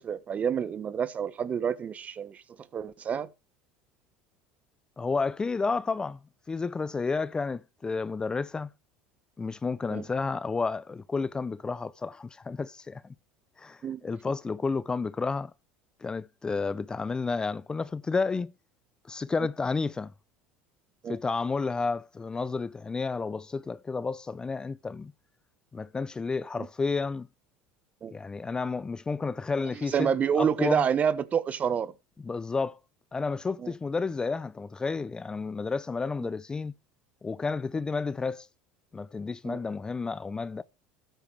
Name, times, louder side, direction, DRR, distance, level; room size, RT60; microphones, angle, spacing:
voice 1, 0.0-2.4 2.7-3.3 9.9-10.0 13.8-14.0 21.0-21.2 26.6-26.7 28.0-28.1 29.6-31.9 33.6-33.7 39.4-39.6, right 7 dB, 35° right, 1.1 m, -28 dB
voice 2, 5.0-6.2 6.5-8.7 9.4-13.0 13.6-15.5 16.0-18.5 19.1-20.1 21.1-25.1 25.7-27.3 28.1-30.1 30.3-30.8 32.2-32.8 33.1-36.7 37.2-38.5 38.9-40.6, left 4 dB, 20° left, 0.5 m, -31 dB
13.5 x 9.1 x 3.3 m
supercardioid pair, 105°, 4 cm